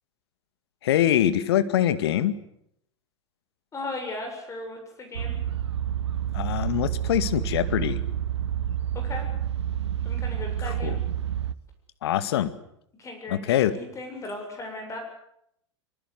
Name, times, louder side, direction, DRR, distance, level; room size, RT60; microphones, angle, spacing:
voice 1, 0.8-2.4 6.3-8.0 10.8-11.0 12.0-12.5 13.3-13.7, left 11 dB, 60° left, 13 dB, 2.1 m, -23 dB
voice 2, 3.7-5.3 8.9-9.3 10.0-11.0 13.0-15.0, left 2 dB, 20° left, 4 dB, 7.4 m, -37 dB
sound 1, 5.1-11.5, right 10 dB, 70° right, 1.2 m, -29 dB
24.5 x 23.5 x 8.3 m, 0.73 s
figure-of-eight pair, 95°, 15 cm